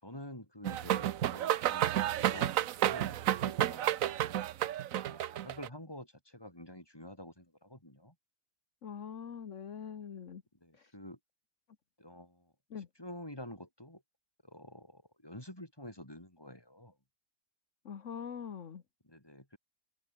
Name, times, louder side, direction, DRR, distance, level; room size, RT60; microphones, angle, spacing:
voice 1, 0.0-1.9 2.2-4.4 5.0-8.1 10.6-11.2 12.0-12.5 13.0-14.0 14.4-16.9 19.0-19.6, left 1 dB, 15° left, 5.6 m, -49 dB
sound 1, 0.6-5.7, right 12 dB, 70° right, 1.1 m, -31 dB
voice 2, 8.8-10.4 10.7-10.9 12.7-12.9 17.8-18.8, left 7 dB, 60° left, 1.6 m, -43 dB
omnidirectional pair, 1.5 m